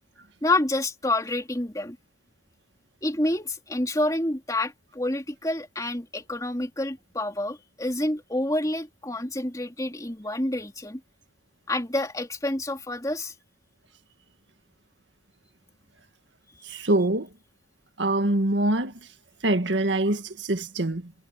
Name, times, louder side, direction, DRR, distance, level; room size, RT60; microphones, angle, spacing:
voice 1, 0.4-2.0 3.0-11.0 11.7-13.3, left 1 dB, 20° left, 3.2 m, -28 dB
voice 2, 16.6-17.3 18.0-18.9 19.4-21.1, right 1 dB, 85° right, 1.8 m, -24 dB
head